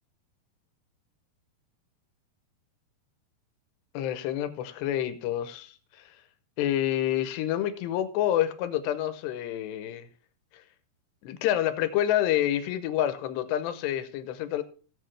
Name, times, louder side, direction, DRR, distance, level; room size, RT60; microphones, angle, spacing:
voice 1, 3.9-6.1 6.6-10.1 10.5-10.6 11.2-14.6, left 12 dB, 85° left, 3.1 m, -28 dB
17.0 x 8.2 x 3.3 m
omnidirectional pair, 4.8 m